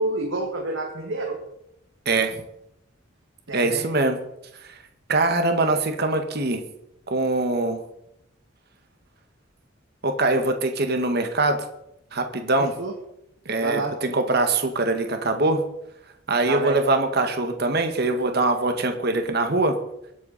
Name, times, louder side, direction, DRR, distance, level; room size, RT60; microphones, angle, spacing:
voice 1, 0.0-1.4 3.5-3.9 12.6-12.9 13.6-14.0 16.5-16.8, right 2 dB, 80° right, 0 dB, 2.1 m, -28 dB
voice 2, 2.0-2.4 3.5-4.2 4.7-4.8 5.1-6.6 7.1-7.8 10.0-11.6 12.1-12.7 13.4-15.6 16.3-19.7, right 2 dB, 55° right, 6 dB, 1.7 m, -23 dB
23.5 x 8.4 x 4.2 m, 0.80 s
head